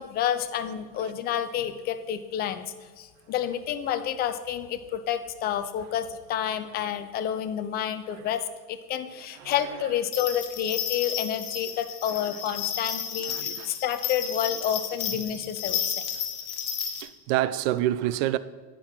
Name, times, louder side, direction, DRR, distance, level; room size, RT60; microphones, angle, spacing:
voice 1, 0.0-16.0, left 10 dB, 25° left, 0.3 m, -29 dB
sound 1, 10.1-17.0, left 8 dB, 70° left, 1.3 m, -32 dB
voice 2, 13.3-13.8 15.1-15.2 17.0-18.4, right 14 dB, 50° right, 0.5 m, -28 dB
9.3 x 4.9 x 5.8 m
hypercardioid pair, 90°, 49 cm